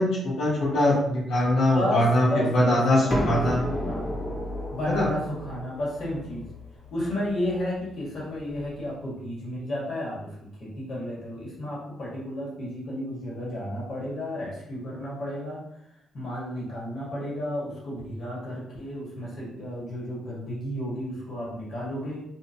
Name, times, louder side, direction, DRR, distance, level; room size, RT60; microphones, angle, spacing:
voice 1, 0.0-3.6 4.9-5.1, left 1 dB, 85° left, -6 dB, 0.9 m, -22 dB
voice 2, 1.7-3.4 3.9-4.1 4.7-6.5 6.9-10.3 10.6-15.6 16.1-22.2, left 1 dB, 60° left, -5 dB, 1.3 m, -32 dB
sound 1, 3.1-8.7, left 1 dB, 30° left, 0.6 m, -33 dB
2.8 x 2.0 x 2.7 m, 0.76 s
cardioid pair, 90°, 0 cm